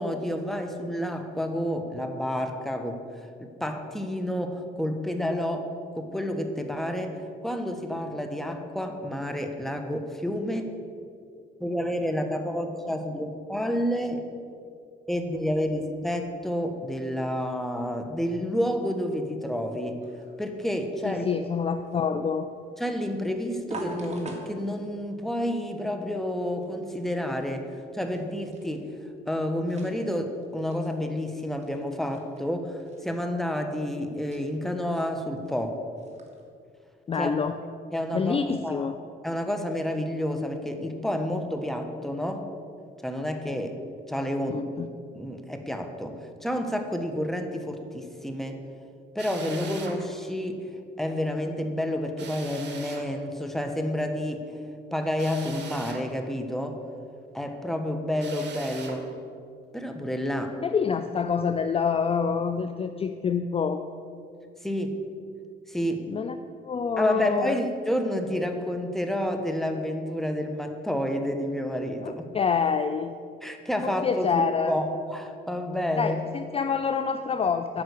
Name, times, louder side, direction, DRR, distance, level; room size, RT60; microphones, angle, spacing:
voice 1, 0.0-3.0 3.4-5.7 5.9-10.7 11.6-14.3 15.1-20.0 20.4-21.2 22.8-28.9 29.3-35.8 37.2-37.3 37.9-38.9 39.2-42.4 43.0-43.8 44.1-44.6 45.1-46.2 46.4-48.6 49.1-50.6 51.0-54.5 54.9-56.8 57.3-59.0 59.7-60.6 64.6-65.0 65.7-66.1 67.0-72.3 73.4-76.2, equal, ahead, 5 dB, 1.2 m, -29 dB
sound 1, 20.0-36.5, right 1 dB, 35° right, 1.9 m, -46 dB
voice 2, 21.0-22.5 37.1-37.6 38.1-38.9 44.5-44.9 60.6-63.9 66.1-66.4 66.6-67.6 72.0-73.2 73.8-74.7 76.0-77.8, left 6 dB, 30° left, 9 dB, 0.4 m, -27 dB
Drill, 49.2-50.0 52.2-53.1 55.2-56.1 58.2-59.0, right 5 dB, 60° right, 1.6 m, -42 dB
9.6 x 5.6 x 8.3 m, 2.4 s
cardioid pair, 90°, 20 cm